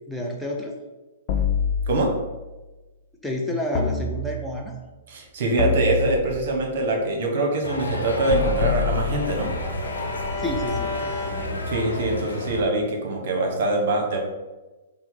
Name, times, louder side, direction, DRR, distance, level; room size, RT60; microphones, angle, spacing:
voice 1, 0.1-0.7 3.2-4.8 10.4-11.1, left 1 dB, ahead, -1 dB, 0.5 m, -29 dB
sound 1, 1.3-2.4 3.7-4.7 5.6-6.7 8.3-9.7, left 5 dB, 45° left, 0.7 m, -26 dB
voice 2, 5.1-9.5 11.7-14.2, right 2 dB, 55° right, 2 dB, 0.9 m, -24 dB
sound 2, 7.6-12.6, left 1 dB, 85° left, 0.7 m, -31 dB
Bowed string instrument, 8.0-12.2, left 2 dB, 60° left, 1.1 m, -35 dB
5.6 x 2.1 x 3.8 m, 1.2 s
figure-of-eight pair, 115°, 0 cm